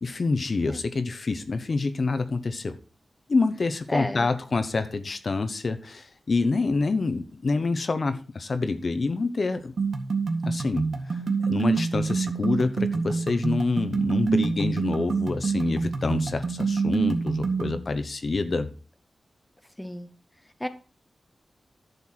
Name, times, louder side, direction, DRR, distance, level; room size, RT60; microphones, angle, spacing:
voice 1, 0.0-2.8 3.3-9.7 10.4-11.2 11.5-18.7, left 3 dB, 55° left, 9 dB, 1.0 m, -27 dB
voice 2, 3.9-4.3 19.8-20.1 20.6-20.7, left 1 dB, 10° left, 9 dB, 1.0 m, -32 dB
sound 1, 9.8-17.8, right 4 dB, 70° right, 1.7 m, -26 dB
11.0 x 7.0 x 4.5 m, 0.37 s
wide cardioid pair, 75°, 0 cm